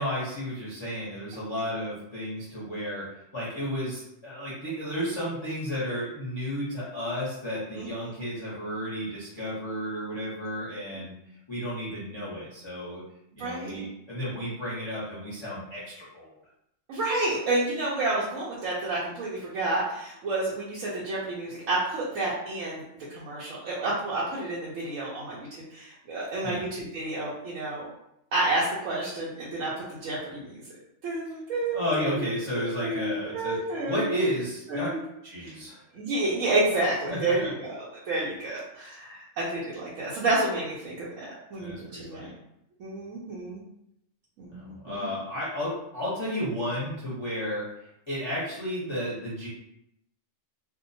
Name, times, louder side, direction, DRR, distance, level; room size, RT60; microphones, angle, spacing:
voice 1, 0.0-3.0 3.3-11.1 11.5-13.0 13.4-16.3 26.4-26.6 31.7-33.6 33.9-34.9 35.2-35.8 37.1-37.5 41.6-42.3 44.5-47.7 48.1-49.5, equal, 30° left, -9 dB, 0.6 m, -32 dB
voice 2, 7.7-8.1 13.4-13.9 16.9-22.8 23.1-27.9 28.3-30.6 31.0-34.2 34.7-35.0 35.4-35.6 35.9-37.8 38.1-42.3 42.8-43.6 44.4-45.1, right 2 dB, 85° right, -7 dB, 1.0 m, -30 dB
2.7 x 2.1 x 2.6 m, 0.80 s
omnidirectional pair, 1.4 m